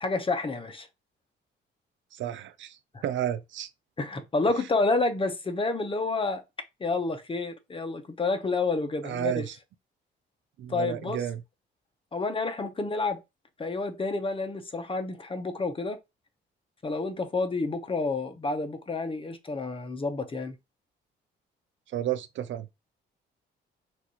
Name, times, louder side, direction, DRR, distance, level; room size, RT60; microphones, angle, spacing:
voice 1, 0.0-0.9 4.0-6.4 6.8-9.4 10.7-11.2 12.1-13.2 13.6-16.0 16.8-20.5, left 3 dB, 25° left, 0.9 m, -29 dB
voice 2, 2.1-3.7 9.0-9.6 10.6-11.4 21.9-22.7, right 11 dB, 70° right, 0.6 m, -32 dB
6.0 x 2.6 x 3.0 m
cardioid pair, 90°, 20 cm